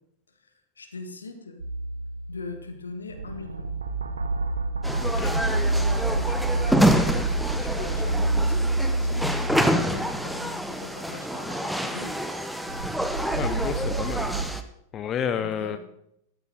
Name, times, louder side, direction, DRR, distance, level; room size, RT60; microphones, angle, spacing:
voice 1, 0.8-1.6 2.3-3.7 5.2-12.4 15.3-15.8, left 3 dB, 75° left, 7 dB, 1.7 m, -41 dB
sound 1, 1.6-2.7 3.1-10.6 12.7-14.5, right 2 dB, 75° right, 1.0 m, -28 dB
sound 2, 4.8-14.6, equal, ahead, 0.9 m, -27 dB
voice 2, 5.0-5.3 13.4-14.3 14.9-15.8, left 8 dB, 30° left, 10 dB, 0.7 m, -30 dB
13.5 x 12.5 x 3.8 m, 0.76 s
figure-of-eight pair, 90°, 0 cm